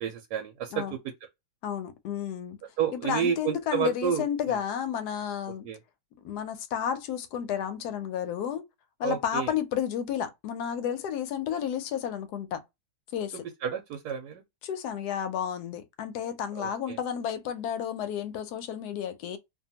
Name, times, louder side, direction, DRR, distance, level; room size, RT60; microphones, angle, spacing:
voice 1, 0.0-1.0 2.8-4.6 5.6-5.8 9.0-9.5 13.6-14.4 16.6-17.0, right 8 dB, 80° right, 1.1 m, -30 dB
voice 2, 1.6-2.6 2.9-5.7 6.2-8.7 9.0-12.6 13.1-13.5 14.6-19.4, left 9 dB, 75° left, 1.1 m, -32 dB
2.8 x 2.3 x 2.7 m
omnidirectional pair, 1.8 m